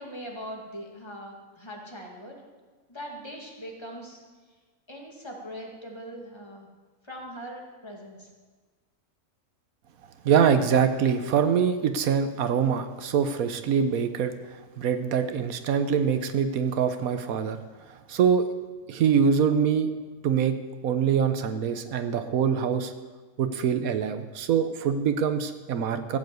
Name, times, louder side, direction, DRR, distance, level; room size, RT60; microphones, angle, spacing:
voice 1, 0.0-2.4 2.9-4.2 4.9-6.7 7.0-8.3, equal, 20° left, -1 dB, 2.4 m, -41 dB
voice 2, 10.2-14.3 14.8-17.6 17.9-18.4 18.9-19.9 20.2-20.6 20.8-22.9 23.4-26.2, right 7 dB, 90° right, 9 dB, 1.3 m, -24 dB
15.5 x 7.8 x 7.8 m, 1.4 s
omnidirectional pair, 1.4 m